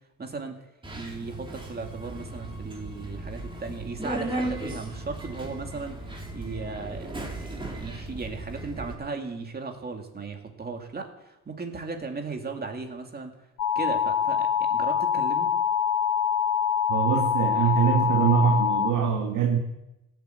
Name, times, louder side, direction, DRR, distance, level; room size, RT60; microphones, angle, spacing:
voice 1, 0.2-0.6 0.9-6.0 6.3-13.3 13.7-15.5, right 4 dB, 30° right, 3 dB, 2.5 m, -36 dB
Subway metro underground, 0.8-8.9, right 2 dB, 15° right, 3.0 m, -36 dB
sound 1, 13.6-18.9, left 8 dB, 75° left, 1.1 m, -25 dB
voice 2, 16.9-19.6, right 7 dB, 80° right, 2 dB, 1.7 m, -23 dB
16.5 x 8.2 x 8.0 m, 0.94 s
cardioid pair, 90°, 30 cm